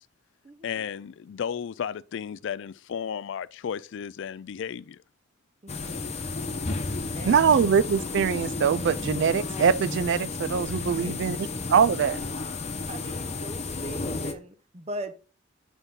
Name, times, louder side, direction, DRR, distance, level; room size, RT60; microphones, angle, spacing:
voice 1, 0.6-5.0, left 8 dB, 65° left, 0.4 m, -34 dB
voice 2, 5.6-6.0 7.2-7.7 10.9-11.1 12.9-15.1, right 1 dB, 30° right, 0.8 m, -40 dB
sound 1, 5.7-14.3, left 3 dB, 35° left, 1.0 m, -33 dB
voice 3, 7.2-11.4 11.7-12.2, right 6 dB, 60° right, 0.4 m, -23 dB
sound 2, 7.4-10.5 10.9-11.9 12.4-12.5, left 1 dB, 10° left, 0.5 m, -42 dB
8.2 x 5.6 x 3.7 m
head